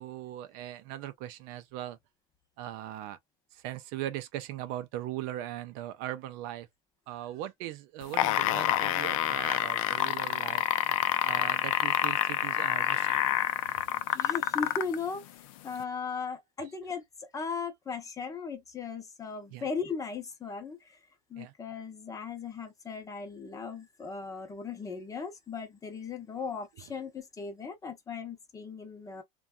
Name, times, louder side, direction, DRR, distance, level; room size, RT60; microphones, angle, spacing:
voice 1, 0.0-2.0 2.6-3.2 3.5-6.7 7.1-10.6 11.2-13.2 13.7-13.9 16.6-16.7 19.5-19.7 21.4-21.5 26.8-26.9, right 13 dB, 60° right, 0.4 m, -39 dB
sound 1, 8.0-15.0 15.8-15.9, left 13 dB, 80° left, 0.4 m, -27 dB
voice 2, 14.1-15.2 15.6-17.0 17.3-20.8 21.3-29.2, left 5 dB, 20° left, 0.7 m, -37 dB
2.6 x 2.2 x 2.3 m
supercardioid pair, 125°, 17 cm